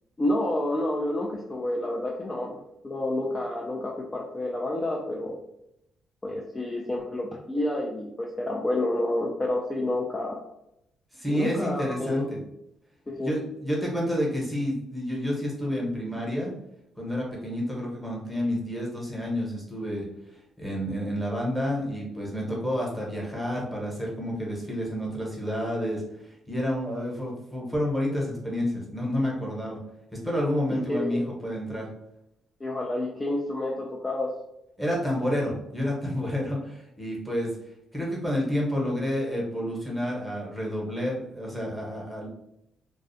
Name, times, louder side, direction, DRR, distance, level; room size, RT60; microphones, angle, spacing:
voice 1, 0.2-5.3 6.2-10.4 11.3-12.3 13.1-13.3 30.7-31.2 32.6-34.3, left 1 dB, 25° left, -2 dB, 0.4 m, -29 dB
voice 2, 11.1-12.4 13.2-16.5 17.0-20.1 20.6-29.8 30.1-31.9 34.8-37.5 37.9-42.3, equal, ahead, -3 dB, 0.9 m, -29 dB
2.3 x 2.0 x 2.6 m, 0.81 s
cardioid pair, 90°, 0 cm